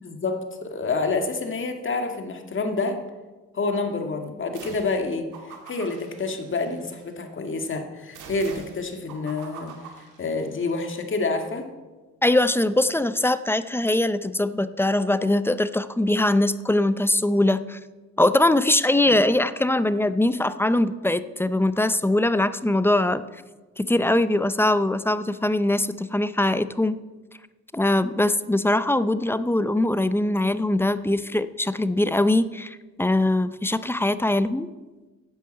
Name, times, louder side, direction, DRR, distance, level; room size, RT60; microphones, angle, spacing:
voice 1, 0.0-3.0 3.5-9.7 10.2-11.7 19.0-19.2, left 3 dB, 40° left, 5 dB, 1.9 m, -28 dB
sound 1, 4.5-5.0 5.3-7.1 8.1-10.7, right 5 dB, 85° right, 2.2 m, -44 dB
voice 2, 12.2-17.8 18.2-23.2 23.8-27.0 27.7-34.7, left 1 dB, 10° left, 13 dB, 0.6 m, -22 dB
10.5 x 8.3 x 7.6 m, 1.2 s
cardioid pair, 90°, 30 cm